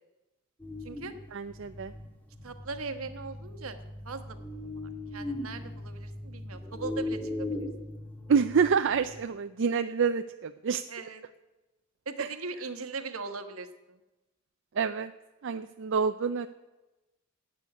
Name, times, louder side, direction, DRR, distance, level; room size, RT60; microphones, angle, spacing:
sound 1, 0.6-9.3, left 1 dB, 10° left, 2.0 m, -39 dB
voice 1, 0.8-1.1 2.4-3.8 4.0-7.5 10.9-11.2 12.0-14.0, right 4 dB, 80° right, 8 dB, 1.3 m, -40 dB
voice 2, 1.3-1.9 8.3-10.8 12.2-12.3 14.8-15.1 15.4-16.5, right 6 dB, 60° right, 9 dB, 0.4 m, -27 dB
11.5 x 8.5 x 9.8 m, 1.1 s
head